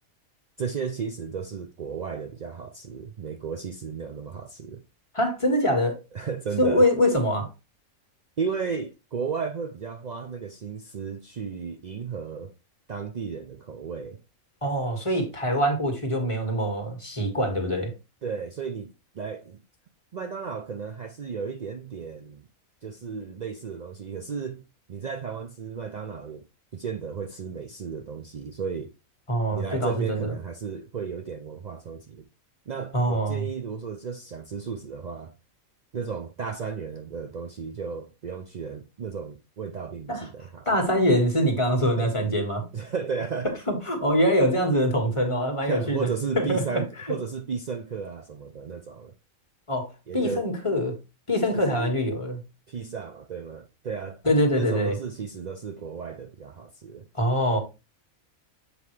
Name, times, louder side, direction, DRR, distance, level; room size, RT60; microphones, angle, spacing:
voice 1, 0.6-4.8 6.1-6.9 8.4-12.5 12.9-14.2 15.1-15.2 18.2-19.6 20.1-22.5 22.8-24.6 24.9-26.4 26.7-28.9 29.5-32.3 32.7-35.3 35.9-40.7 41.8-42.4 42.7-43.5 45.7-49.1 50.1-50.5 51.5-51.9 52.7-54.2 54.5-57.1, right 6 dB, 70° right, 0.4 m, -34 dB
voice 2, 5.1-6.0 6.6-7.5 14.6-17.9 29.3-30.3 32.9-33.4 40.1-40.3 40.6-42.6 43.7-46.1 46.3-46.8 47.1-47.2 49.7-50.9 51.3-52.4 54.2-54.9 57.2-57.6, equal, 20° left, 1.7 m, -24 dB
7.6 x 4.8 x 3.2 m
omnidirectional pair, 1.5 m